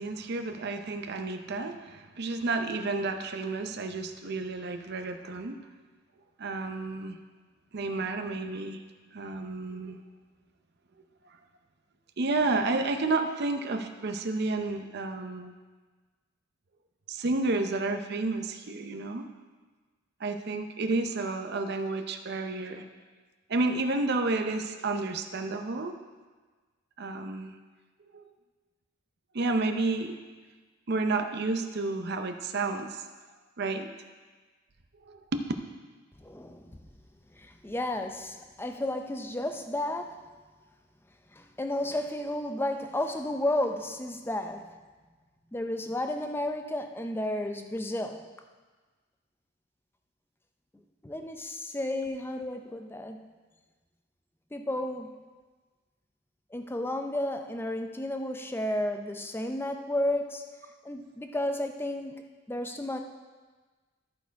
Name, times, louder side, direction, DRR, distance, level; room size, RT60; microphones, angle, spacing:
voice 1, 0.0-5.6 6.4-7.2 7.7-8.8 9.1-10.0 12.2-15.5 17.1-19.3 20.2-22.8 23.5-26.0 27.0-27.5 28.1-28.3 29.3-30.2 30.9-33.0 33.6-33.9 35.0-35.4, right 3 dB, 50° right, 7 dB, 0.6 m, -31 dB
voice 2, 36.2-36.8 37.3-40.3 41.3-44.7 45.5-48.3 51.0-53.2 54.5-55.1 56.5-60.4 60.8-62.2 62.5-63.0, left 1 dB, 10° left, 6 dB, 0.5 m, -32 dB
13.5 x 4.6 x 4.6 m, 1.3 s
head